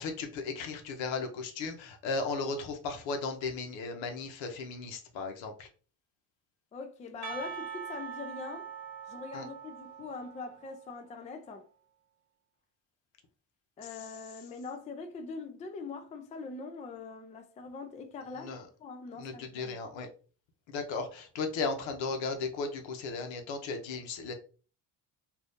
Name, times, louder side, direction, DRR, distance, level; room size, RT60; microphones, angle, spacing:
voice 1, 0.0-5.7 9.3-9.5 18.4-18.7 19.2-20.1 20.7-24.3, left 4 dB, 85° left, 0.9 m, -36 dB
voice 2, 6.7-8.7 9.1-11.7 13.8-18.5 18.8-19.8, left 4 dB, 20° left, 0.3 m, -42 dB
Percussion, 7.2-11.1, right 7 dB, 75° right, 0.9 m, -43 dB
2.7 x 2.6 x 3.5 m
cardioid pair, 120°, 44 cm